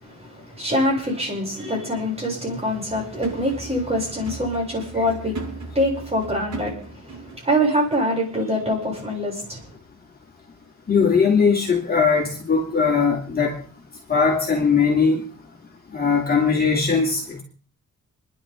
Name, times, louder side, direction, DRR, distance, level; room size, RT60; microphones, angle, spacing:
voice 1, 0.0-9.7, equal, 20° right, 7.3 m, -25 dB
sound 1, 2.9-7.5 7.8-7.9, right 4 dB, 70° right, 7.3 m, -37 dB
voice 2, 10.9-13.6 14.1-15.2 15.9-17.4, left 5 dB, 30° left, 3.0 m, -19 dB
29.5 x 11.0 x 3.8 m
wide cardioid pair, 165°, 30 cm